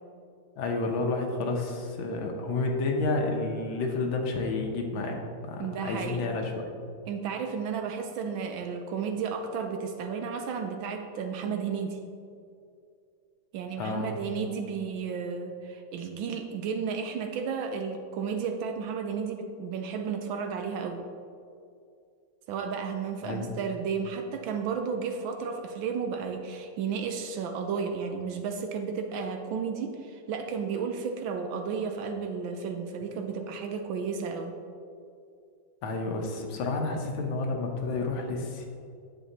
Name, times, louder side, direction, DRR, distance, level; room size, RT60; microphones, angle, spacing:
voice 1, 0.6-6.7 13.8-14.1 23.2-23.5 35.8-38.7, left 3 dB, 70° left, 2 dB, 1.5 m, -30 dB
voice 2, 5.6-6.3 7.1-12.0 13.5-21.0 22.5-34.5, right 6 dB, 75° right, 5 dB, 1.3 m, -33 dB
10.0 x 7.0 x 2.8 m, 2.4 s
omnidirectional pair, 2.4 m